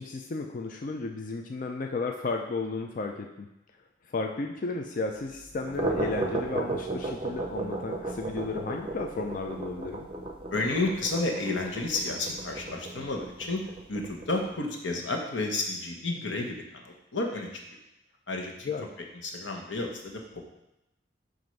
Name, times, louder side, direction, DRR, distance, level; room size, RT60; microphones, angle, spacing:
voice 1, 0.0-3.5 4.1-10.1 18.7-18.8, left 3 dB, 45° left, 2 dB, 0.4 m, -33 dB
sound 1, 5.5-14.5, right 2 dB, 30° right, 0.6 m, -35 dB
voice 2, 10.5-17.6 18.3-18.7 19.1-20.5, left 2 dB, 90° left, 2 dB, 1.0 m, -31 dB
7.5 x 2.6 x 5.3 m, 0.90 s
head